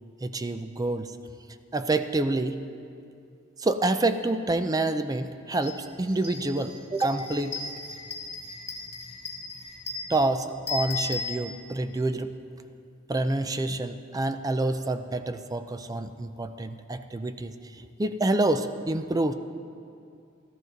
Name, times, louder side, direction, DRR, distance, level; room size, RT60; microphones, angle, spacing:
voice 1, 0.2-1.1 1.7-2.6 3.6-7.6 10.1-12.3 13.1-19.3, right 2 dB, 20° right, 9 dB, 0.4 m, -27 dB
sound 1, 5.6-5.8 6.1-11.9, left 3 dB, 30° left, 1.8 m, -36 dB
14.0 x 13.5 x 4.0 m, 2.5 s
head